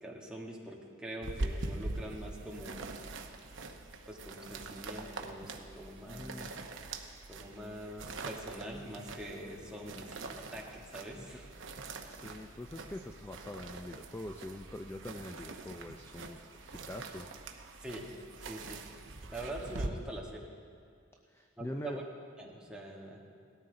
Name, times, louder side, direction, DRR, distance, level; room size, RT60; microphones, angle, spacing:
voice 1, 0.0-2.9 4.1-6.3 7.3-11.5 17.8-18.1 18.4-18.8 19.3-20.4 21.6-22.0 22.4-23.2, right 1 dB, 5° right, -2 dB, 1.5 m, -44 dB
sound 1, 1.2-19.9, right 2 dB, 65° right, 0.9 m, -43 dB
voice 2, 6.1-6.5 11.1-11.3 12.1-17.3 21.3-22.0, left 1 dB, 10° left, 5 dB, 0.4 m, -44 dB
18.0 x 13.0 x 3.9 m, 2.3 s
head